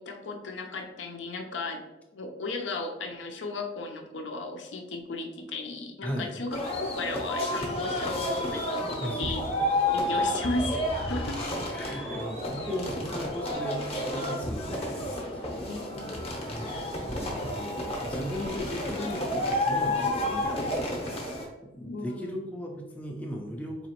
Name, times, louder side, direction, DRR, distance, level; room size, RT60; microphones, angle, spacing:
voice 1, 0.0-1.8 2.1-9.5 9.9-11.4 11.8-12.2 15.6-16.2 21.8-22.4, left 2 dB, 85° left, 3 dB, 0.6 m, -35 dB
voice 2, 6.0-6.3 9.0-9.3 11.7-15.0 15.3-15.5 16.5-21.4 21.7-23.9, equal, 10° left, -1 dB, 0.4 m, -37 dB
sound 1, 6.5-21.5, left 1 dB, 35° left, 0.7 m, -31 dB
4.1 x 2.9 x 2.9 m, 1.0 s
head